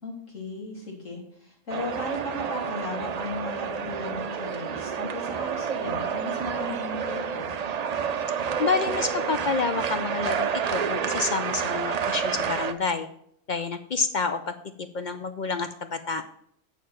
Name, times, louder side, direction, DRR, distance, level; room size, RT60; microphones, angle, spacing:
voice 1, 0.0-7.4, left 2 dB, 85° left, -2 dB, 3.1 m, -36 dB
sound 1, 1.7-12.7, right 7 dB, 55° right, 0.4 m, -29 dB
voice 2, 8.6-13.1 13.5-14.4 14.8-16.2, left 4 dB, 55° left, 9 dB, 0.5 m, -28 dB
7.2 x 6.6 x 5.7 m, 0.67 s
omnidirectional pair, 1.3 m